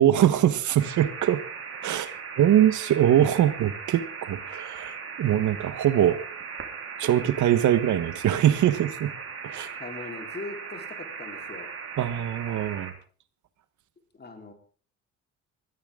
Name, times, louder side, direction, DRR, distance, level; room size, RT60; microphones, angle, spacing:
voice 1, 0.0-1.4 1.8-6.2 7.0-9.1 9.4-9.7 12.0-12.9, right 11 dB, 75° right, 13 dB, 1.4 m, -23 dB
sound 1, 0.8-12.9, right 6 dB, 50° right, 3.9 m, -38 dB
voice 2, 9.6-11.7 14.2-14.5, left 3 dB, 35° left, 4 dB, 4.2 m, -40 dB
20.5 x 14.5 x 3.8 m, 0.41 s
cardioid pair, 90°, 30 cm